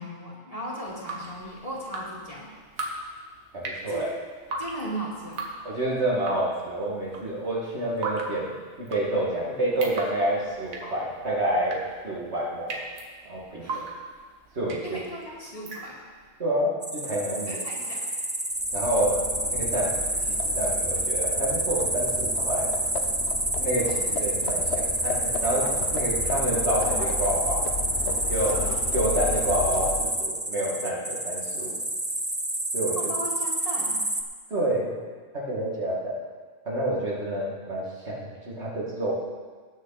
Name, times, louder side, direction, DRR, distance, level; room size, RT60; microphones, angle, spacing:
voice 1, 0.0-2.5 3.9-4.0 4.6-5.4 13.6-13.8 14.8-16.0 17.5-18.1 23.9-24.0 28.5-28.8 32.9-34.0, right 1 dB, 25° left, -5 dB, 2.3 m, -37 dB
Drip, 0.8-16.3, right 3 dB, 80° right, 1.6 m, -39 dB
voice 2, 3.5-4.0 5.6-8.5 8.8-12.8 13.2-13.8 14.5-15.0 16.4-17.5 18.7-19.2 19.5-19.9 20.3-22.7 23.6-27.7 28.3-28.7 28.9-31.8 32.7-33.1 34.5-34.9 35.3-36.1 36.7-39.1, right 1 dB, 55° right, -6 dB, 2.4 m, -28 dB
sound 1, 16.8-34.2, right 1 dB, 15° right, 0.4 m, -28 dB
Livestock farm animals working animals, 18.6-30.2, left 6 dB, 55° left, 1.0 m, -35 dB
19.0 x 6.4 x 4.1 m, 1.5 s
omnidirectional pair, 1.4 m